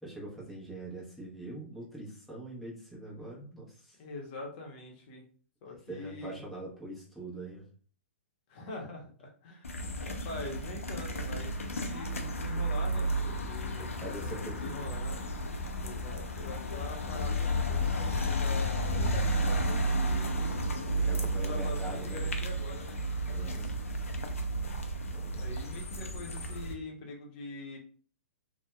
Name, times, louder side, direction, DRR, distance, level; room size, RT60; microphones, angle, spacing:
voice 1, 0.0-4.0 5.9-7.6 13.2-13.3 13.8-14.9 20.9-22.3 23.2-23.7 25.1-25.4, right 1 dB, ahead, -6 dB, 0.8 m, -43 dB
voice 2, 4.0-5.2 5.6-6.4 8.5-15.3 15.8-20.3 21.4-23.0 23.3-23.7 25.4-27.8, left 2 dB, 40° left, 0 dB, 0.8 m, -44 dB
sound 1, 9.6-26.7, right 1 dB, 85° left, 0.4 m, -32 dB
2.6 x 2.1 x 2.2 m, 0.43 s
figure-of-eight pair, 115°, 7 cm